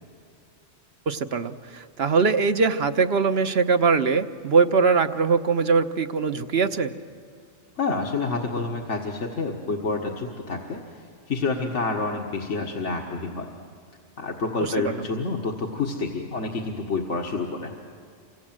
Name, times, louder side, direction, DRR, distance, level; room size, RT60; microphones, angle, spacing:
voice 1, 1.1-6.9 14.6-15.1, right 5 dB, 60° right, 9 dB, 1.2 m, -22 dB
voice 2, 7.8-13.5 14.2-17.7, left 3 dB, 80° left, 1 dB, 2.0 m, -28 dB
28.5 x 25.5 x 7.6 m, 2.3 s
omnidirectional pair, 1.2 m